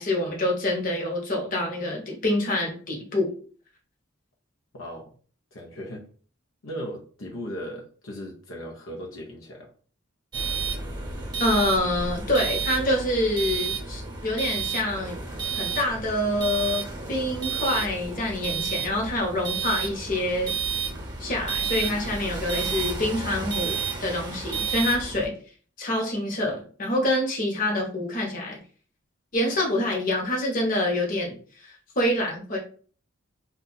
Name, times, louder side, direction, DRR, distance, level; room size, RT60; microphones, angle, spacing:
voice 1, 0.0-3.3 11.4-15.2 15.5-20.5 21.2-25.3 25.8-28.6 29.3-32.6, left 1 dB, 45° left, -1 dB, 1.0 m, -26 dB
voice 2, 4.7-5.2 5.5-6.1 6.6-9.7, equal, 80° left, -1 dB, 0.7 m, -37 dB
sound 1, 10.3-25.3, right 6 dB, 20° right, 0.8 m, -31 dB
2.7 x 2.4 x 3.9 m, 0.42 s
head